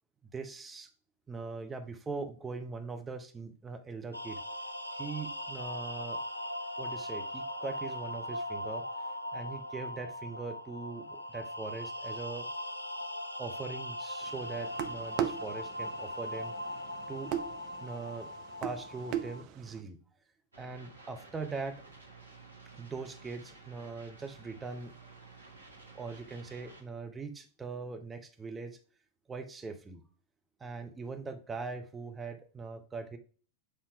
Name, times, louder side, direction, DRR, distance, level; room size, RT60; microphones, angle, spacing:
voice 1, 0.3-0.9 1.3-4.4 5.0-6.2 6.8-8.8 9.3-12.5 13.4-16.5 17.1-17.3 17.8-18.3 18.6-20.0 20.6-21.8 22.8-24.9 25.9-28.8 29.3-30.0 30.6-33.2, right 4 dB, 15° right, 5 dB, 1.0 m, -41 dB
sound 1, 4.1-19.4, left 1 dB, 85° left, 0.4 m, -39 dB
sound 2, 14.2-19.8, right 10 dB, 45° right, 0.6 m, -39 dB
sound 3, 20.5-26.8, right 3 dB, 80° right, 1.1 m, -53 dB
7.2 x 2.9 x 4.8 m, 0.41 s
figure-of-eight pair, 90°, 0 cm